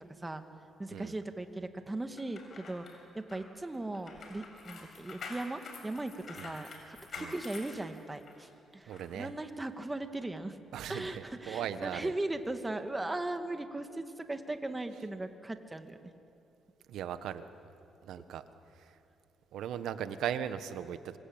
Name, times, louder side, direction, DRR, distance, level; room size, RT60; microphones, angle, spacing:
voice 1, 0.8-2.9 3.1-10.6 10.9-16.1, right 2 dB, 15° right, 7 dB, 2.1 m, -38 dB
sound 1, 2.2-8.4 8.9-9.1, left 4 dB, 55° left, 6.7 m, -47 dB
voice 2, 8.9-9.3 10.7-12.1 16.9-17.5 18.0-18.4 18.7-19.0 19.5-21.2, right 9 dB, 80° right, 11 dB, 1.4 m, -38 dB
26.0 x 25.0 x 8.9 m, 2.7 s
cardioid pair, 90°, 0 cm